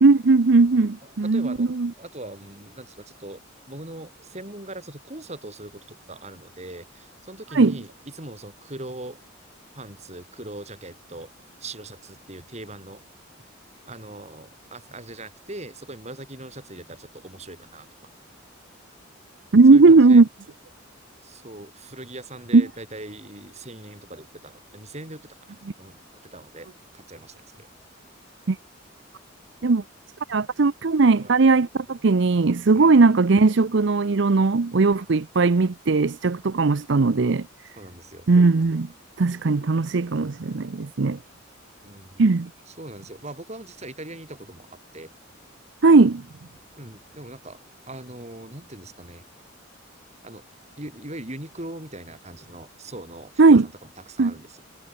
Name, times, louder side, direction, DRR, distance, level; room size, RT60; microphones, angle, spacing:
voice 1, 0.0-1.9 7.5-7.7 19.5-20.3 22.5-22.6 28.5-28.6 29.6-29.8 30.3-37.5 38.3-38.9 39.2-41.2 42.2-42.5 45.8-46.2 53.4-53.6 54.2-54.3, right 3 dB, 60° right, 0.6 m, -18 dB
voice 2, 0.7-1.7 2.0-9.2 9.7-11.3 11.6-13.0 13.9-17.9 19.7-20.2 21.2-26.0 26.3-26.7 26.9-27.7 31.2-31.4 32.7-32.9 37.8-38.3 41.8-42.2 42.7-45.1 46.8-49.3 50.2-50.5 50.8-53.7 54.1-54.6, right 1 dB, 35° right, 5.4 m, -40 dB
head